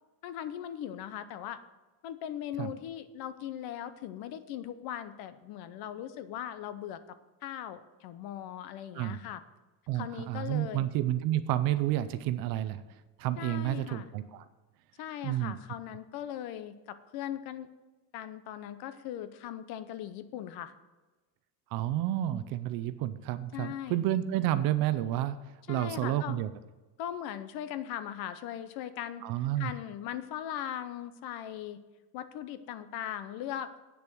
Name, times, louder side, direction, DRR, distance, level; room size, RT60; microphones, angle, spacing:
voice 1, 0.2-1.6 2.0-7.2 7.4-9.4 9.9-10.9 13.4-14.1 15.0-17.7 18.1-20.7 23.5-24.0 25.7-26.4 27.0-29.2 29.6-31.8 32.1-33.7, left 10 dB, 50° left, 13 dB, 0.7 m, -39 dB
voice 2, 9.9-12.8 13.2-14.5 15.2-15.6 21.7-25.4 25.7-26.5 29.2-29.7, right 13 dB, 50° right, 13 dB, 0.6 m, -30 dB
8.7 x 6.8 x 6.2 m, 1.2 s
cardioid pair, 150°, 48 cm